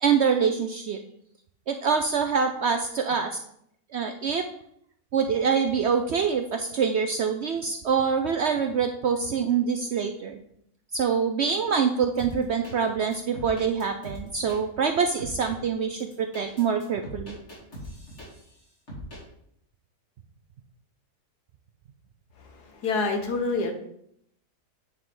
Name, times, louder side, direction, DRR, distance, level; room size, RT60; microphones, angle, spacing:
voice 1, 0.0-1.0 1.7-3.3 3.9-4.4 5.1-10.4 10.9-17.4, right 6 dB, 70° right, 5 dB, 0.6 m, -25 dB
sound 1, 12.2-12.7 13.1-14.6 15.2-15.5 16.0-18.6 18.9-19.2, equal, 45° left, 3.0 m, -41 dB
voice 2, 22.4-23.7, left 3 dB, 85° left, 5 dB, 1.7 m, -27 dB
9.5 x 4.6 x 3.8 m, 0.71 s
omnidirectional pair, 1.6 m